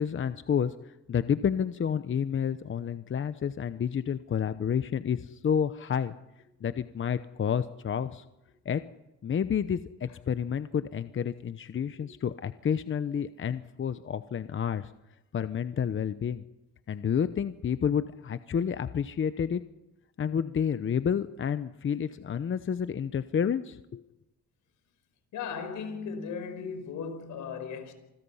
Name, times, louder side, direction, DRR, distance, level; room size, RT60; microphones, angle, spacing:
voice 1, 0.0-6.1 6.6-8.2 8.6-8.8 9.2-14.9 15.3-16.4 16.9-19.6 20.2-24.0, left 8 dB, 40° left, 0.9 m, -30 dB
voice 2, 25.3-27.9, left 6 dB, 80° left, 5.0 m, -36 dB
28.0 x 21.0 x 5.7 m
cardioid pair, 90°, 30 cm